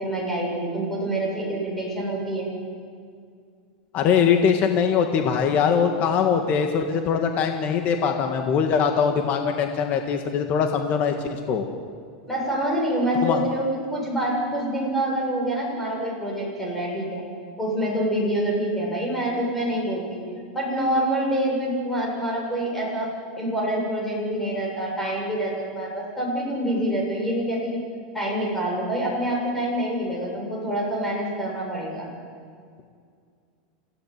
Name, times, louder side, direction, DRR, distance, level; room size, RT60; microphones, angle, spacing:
voice 1, 0.0-2.5 12.3-17.2 17.6-20.2 20.5-23.1 23.4-27.8 28.1-32.1, right 1 dB, 5° left, -3 dB, 7.6 m, -26 dB
voice 2, 3.9-11.7 13.2-13.4, left 7 dB, 35° left, 5 dB, 1.8 m, -22 dB
28.5 x 17.0 x 9.4 m, 2.2 s
supercardioid pair, 155°, 5 cm